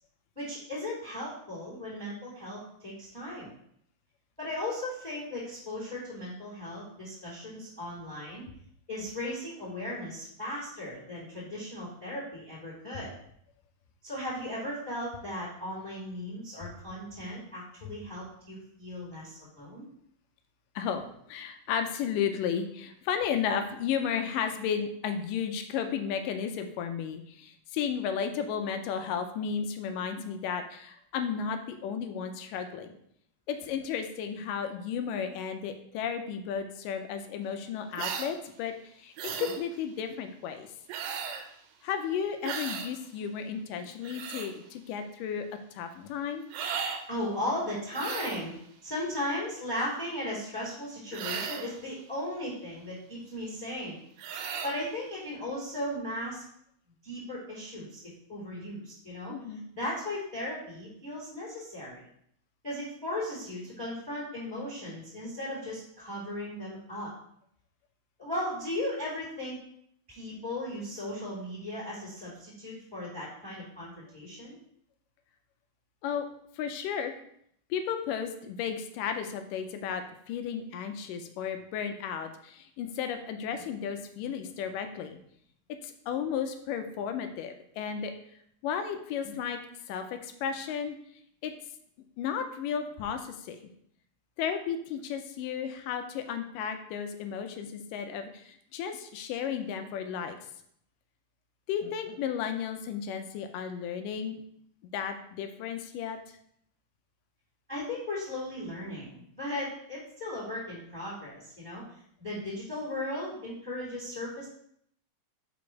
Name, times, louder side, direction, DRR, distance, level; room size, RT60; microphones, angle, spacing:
voice 1, 0.3-3.5 4.4-8.4 8.9-13.1 14.0-19.8 47.1-48.5 48.8-54.0 54.6-56.4 57.0-58.0 58.3-62.0 62.6-67.1 68.2-69.6 70.1-74.5 107.7-111.8 112.2-114.5, left 1 dB, ahead, -6 dB, 2.2 m, -36 dB
voice 2, 21.3-32.9 33.5-40.7 41.8-45.5 45.7-46.5 59.3-59.6 76.0-76.3 76.6-77.1 77.7-85.2 85.8-88.1 88.6-89.6 89.9-91.0 91.4-91.5 92.2-93.7 94.4-100.4 101.7-104.4 104.9-106.2, left 7 dB, 80° left, 7 dB, 2.1 m, -33 dB
sound 1, 38.0-38.3 39.2-39.6 40.9-41.5 42.4-42.9 43.8-44.5 46.5-47.0 47.9-48.5 51.1-51.8 54.2-54.8, right 7 dB, 85° right, 2.4 m, -35 dB
5.2 x 5.1 x 4.7 m, 0.70 s
omnidirectional pair, 4.0 m